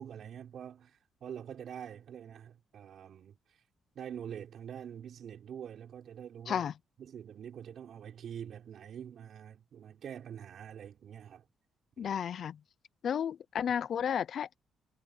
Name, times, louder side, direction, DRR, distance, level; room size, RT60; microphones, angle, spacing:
voice 1, 0.0-3.4 3.9-6.7 7.0-11.4 12.0-12.2, right 9 dB, 60° right, 6.1 m, -45 dB
voice 2, 12.0-12.6 13.0-14.6, left 8 dB, 60° left, 0.7 m, -32 dB
cardioid pair, 90°, 0 cm